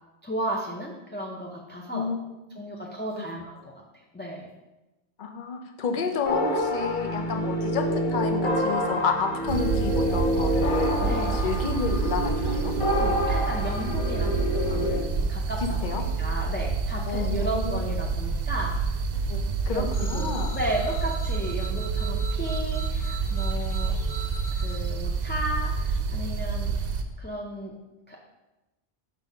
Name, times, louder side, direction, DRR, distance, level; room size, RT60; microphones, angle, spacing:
voice 1, 0.2-2.1 2.5-3.7 4.1-4.5 11.0-11.4 13.0-18.8 19.7-24.0 24.5-26.7 27.2-27.7 28.1-28.2, equal, 15° left, -3 dB, 0.4 m, -34 dB
voice 2, 5.2-11.0 11.3-12.7 15.6-16.0 17.1-17.8 19.3-19.4 19.7-20.5, left 5 dB, 50° left, 4 dB, 0.8 m, -30 dB
sound 1, 6.3-15.0, equal, 30° left, 1.1 m, -27 dB
sound 2, 9.5-27.0, right 4 dB, 60° right, 0.7 m, -28 dB
sound 3, 19.9-24.8, right 3 dB, 75° left, 1.3 m, -41 dB
5.7 x 4.1 x 5.0 m, 1.0 s
omnidirectional pair, 1.1 m